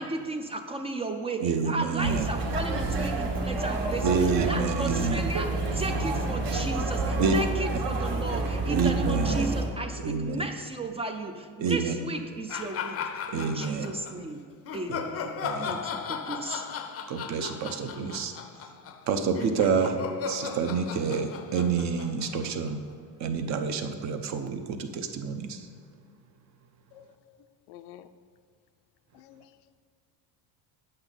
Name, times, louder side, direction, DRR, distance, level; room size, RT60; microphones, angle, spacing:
voice 1, 0.0-13.0 13.3-14.4 14.7-16.7, right 2 dB, 15° right, 0.3 m, -35 dB
voice 2, 1.4-2.2 4.0-5.2 7.2-7.3 8.7-9.5 10.0-10.4 11.6-11.9 13.3-13.9 14.9-15.0 15.4-15.8 17.1-18.3 19.1-19.9 20.2-22.8 23.2-25.6, right 5 dB, 45° right, 0.7 m, -28 dB
sound 1, 2.0-9.7, right 2 dB, 65° right, 1.6 m, -29 dB
sound 2, 12.5-14.1 14.6-22.9, left 7 dB, 40° left, 0.5 m, -36 dB
voice 3, 26.9-27.4 27.7-28.1 29.1-29.6, left 11 dB, 85° left, 0.6 m, -50 dB
8.9 x 7.8 x 4.0 m
cardioid pair, 155°, 38 cm